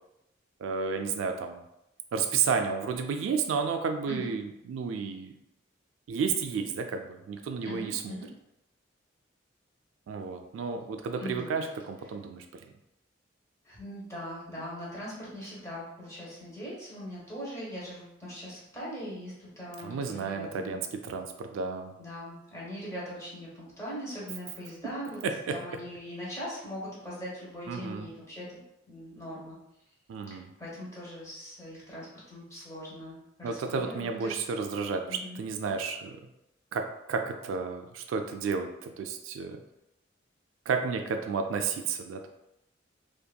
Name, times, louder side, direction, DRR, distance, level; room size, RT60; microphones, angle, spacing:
voice 1, 0.6-1.6 2.1-5.3 6.1-8.2 10.1-12.7 19.8-22.0 25.2-25.5 27.7-28.1 30.1-30.5 33.4-36.1 36.7-39.6 40.7-42.3, right 5 dB, 85° right, 6 dB, 0.3 m, -32 dB
voice 2, 7.6-8.3 11.2-11.5 13.6-20.8 22.0-25.2 25.5-29.6 30.3-34.4 35.1-35.4, equal, 15° left, -7 dB, 0.9 m, -41 dB
2.7 x 2.5 x 2.2 m, 0.86 s
head